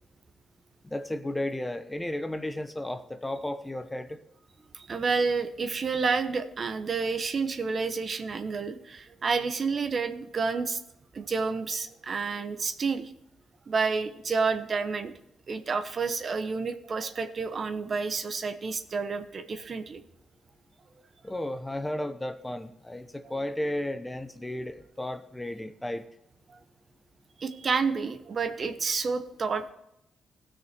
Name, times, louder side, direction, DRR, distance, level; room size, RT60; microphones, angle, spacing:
voice 1, 0.8-4.2 21.2-26.0, left 1 dB, 10° left, 10 dB, 0.9 m, -34 dB
voice 2, 4.7-10.8 11.1-13.1 13.7-15.1 15.5-20.0 23.2-23.3 26.5-26.6 27.4-29.7, right 4 dB, 45° right, 9 dB, 1.1 m, -29 dB
16.0 x 6.4 x 4.5 m, 0.81 s
cardioid pair, 75°, 0 cm